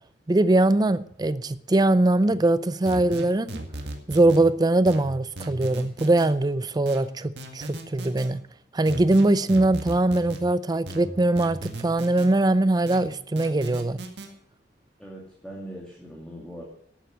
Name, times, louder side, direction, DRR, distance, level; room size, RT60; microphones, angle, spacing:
voice 1, 0.3-3.6 4.1-8.4 8.7-14.0, right 2 dB, 25° right, 16 dB, 0.4 m, -22 dB
sound 1, 2.9-4.4 4.9-6.3 6.9-8.3 8.9-10.4 10.9-12.3 12.9-14.3, right 1 dB, 70° right, 2.0 m, -37 dB
voice 2, 15.0-16.6, right 1 dB, 5° left, -3 dB, 2.5 m, -40 dB
12.0 x 9.1 x 6.3 m, 0.67 s
head